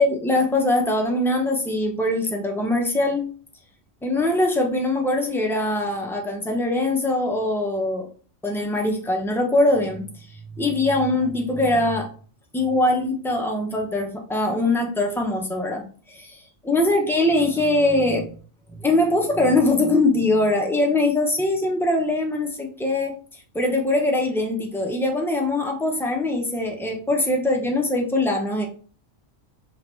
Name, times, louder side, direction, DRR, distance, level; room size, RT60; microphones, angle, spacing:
voice 1, 0.0-3.3 4.0-8.1 8.4-10.1 10.3-12.1 12.5-16.4 16.6-18.3 18.7-23.1 23.5-28.7, left 2 dB, 5° left, 1 dB, 0.5 m, -22 dB
5.0 x 2.9 x 3.1 m, 0.42 s
omnidirectional pair, 1.3 m